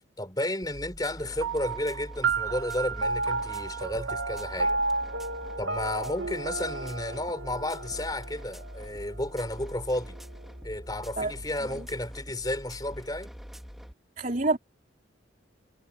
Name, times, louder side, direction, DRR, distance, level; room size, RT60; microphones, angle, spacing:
voice 1, 0.2-4.8 5.6-10.2 10.6-13.3, left 1 dB, 20° left, 5.2 m, -32 dB
sound 1, 0.6-13.9, equal, ahead, 3.2 m, -44 dB
sound 2, 1.4-10.2, right 3 dB, 90° right, 2.3 m, -33 dB
voice 2, 14.2-14.6, right 2 dB, 40° right, 4.1 m, -27 dB
head